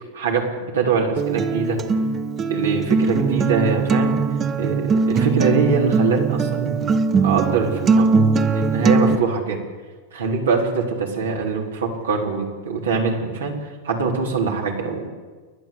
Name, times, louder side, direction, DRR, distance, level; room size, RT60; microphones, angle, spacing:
voice 1, 0.1-0.5 0.7-1.8 2.5-4.1 4.6-9.6 10.1-15.1, right 4 dB, 85° right, 0 dB, 4.2 m, -23 dB
Acoustic guitar, 1.2-9.1, right 4 dB, 30° right, 1.2 m, -20 dB
29.5 x 11.0 x 8.6 m, 1.4 s
hypercardioid pair, 105°, 0 cm